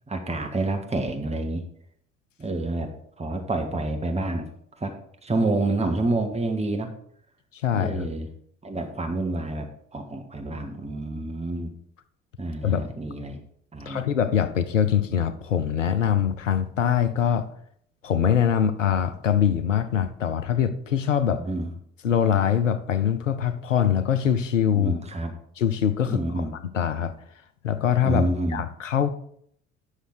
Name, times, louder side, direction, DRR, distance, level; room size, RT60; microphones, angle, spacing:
voice 1, 0.1-1.6 2.4-2.9 3.2-4.5 4.8-5.0 5.2-6.9 7.7-8.3 8.6-11.7 12.4-13.4 13.7-14.0 21.3-21.7 24.7-25.3 26.1-26.5 28.0-28.6, right 2 dB, 15° right, 4 dB, 1.8 m, -28 dB
voice 2, 7.5-8.1 12.6-12.8 13.9-17.5 18.0-21.4 22.0-24.9 25.6-26.4 26.7-27.1 27.6-29.1, left 8 dB, 85° left, 11 dB, 0.7 m, -23 dB
9.9 x 6.5 x 4.8 m, 0.66 s
figure-of-eight pair, 50°, 37 cm